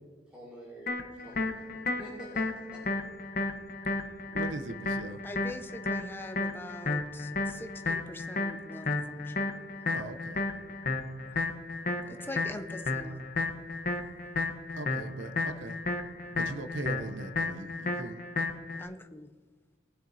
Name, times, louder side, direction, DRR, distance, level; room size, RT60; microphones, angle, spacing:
voice 1, 0.3-2.8, right 1 dB, 5° right, -8 dB, 2.5 m, -48 dB
sound 1, 0.9-18.8, left 3 dB, 45° left, 1.0 m, -33 dB
voice 2, 4.3-5.2 9.9-10.4 12.0-12.3 14.8-15.8 16.3-18.2, right 2 dB, 75° right, 9 dB, 0.7 m, -40 dB
voice 3, 5.2-9.5 9.8-10.0 11.3-11.4 12.1-13.2 16.4-16.6 18.8-19.3, left 1 dB, 10° left, 7 dB, 0.5 m, -43 dB
20.0 x 7.4 x 2.7 m, 1.4 s
head